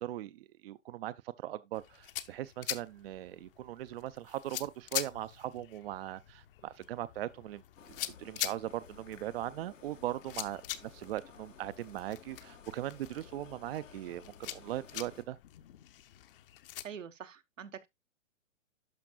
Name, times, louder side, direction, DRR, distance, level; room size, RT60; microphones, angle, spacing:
voice 1, 0.0-7.6 8.2-15.4, right 13 dB, 50° right, 0.5 m, -39 dB
sound 1, 1.7-16.8, left 13 dB, 45° left, 0.8 m, -44 dB
sound 2, 7.8-15.2, left 7 dB, 85° left, 1.5 m, -55 dB
voice 2, 16.8-17.9, right 8 dB, 85° right, 1.2 m, -45 dB
12.0 x 5.2 x 2.3 m
hypercardioid pair, 135°, 37 cm